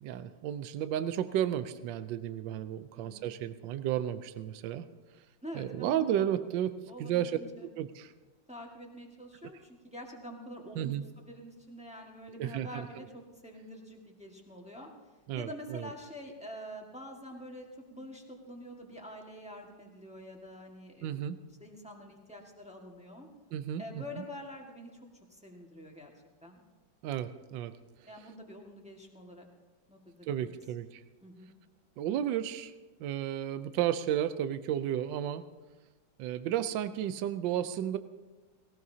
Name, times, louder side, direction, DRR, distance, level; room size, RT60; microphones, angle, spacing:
voice 1, 0.0-4.8 5.5-8.1 10.8-11.0 12.4-12.9 15.3-15.9 21.0-21.4 23.5-24.2 27.0-27.7 30.3-31.0 32.0-32.7 33.0-35.4 36.2-38.0, right 10 dB, 80° right, 11 dB, 1.3 m, -33 dB
voice 2, 2.9-3.3 5.4-6.3 6.9-7.7 8.5-14.9 15.3-21.2 21.6-23.3 23.8-24.9 25.3-26.1 26.4-26.6 28.1-29.5 29.9-30.5 31.2-31.5, equal, 5° right, 0 dB, 1.4 m, -46 dB
18.5 x 18.0 x 2.8 m, 1.2 s
omnidirectional pair, 2.0 m